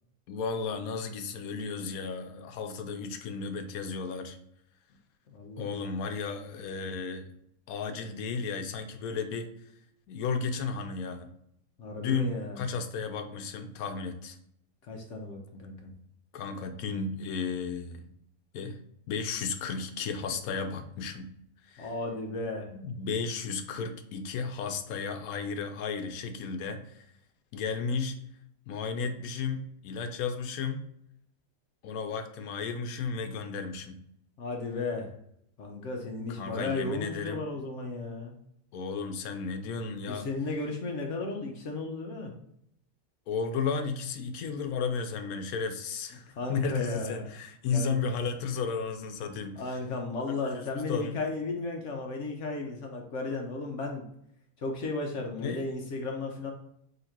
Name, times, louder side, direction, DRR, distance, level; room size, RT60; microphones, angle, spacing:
voice 1, 0.3-4.4 5.6-7.3 7.7-9.5 10.1-11.3 12.0-14.4 16.3-18.1 18.5-18.8 19.1-21.3 21.6-21.9 22.7-27.1 27.5-28.2 28.7-30.8 31.8-34.0 36.4-37.5 38.7-40.3 43.3-49.8 50.8-51.1 55.4-55.7, left 5 dB, 85° left, 7 dB, 1.1 m, -34 dB
voice 2, 5.3-5.7 11.8-12.7 14.9-15.9 21.8-22.7 34.4-35.1 35.6-38.4 40.1-42.3 46.3-47.3 47.7-48.0 49.6-54.0 54.6-56.5, left 3 dB, 65° left, 2 dB, 0.9 m, -34 dB
3.8 x 2.8 x 4.4 m, 0.72 s
omnidirectional pair, 1.5 m